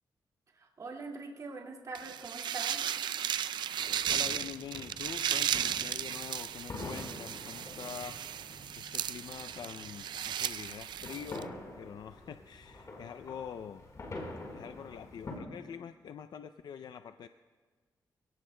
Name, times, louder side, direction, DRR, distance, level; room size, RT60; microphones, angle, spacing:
voice 1, 0.5-2.8, right 3 dB, 50° right, -1 dB, 2.1 m, -43 dB
sound 1, 1.9-11.4, right 9 dB, 80° right, 0.4 m, -35 dB
sound 2, 3.8-15.4, left 2 dB, 45° left, 4.3 m, -47 dB
voice 2, 4.0-8.4 8.8-13.8 14.5-17.3, left 8 dB, 65° left, 10 dB, 0.4 m, -45 dB
26.5 x 18.0 x 2.2 m, 1.5 s
cardioid pair, 100°, 8 cm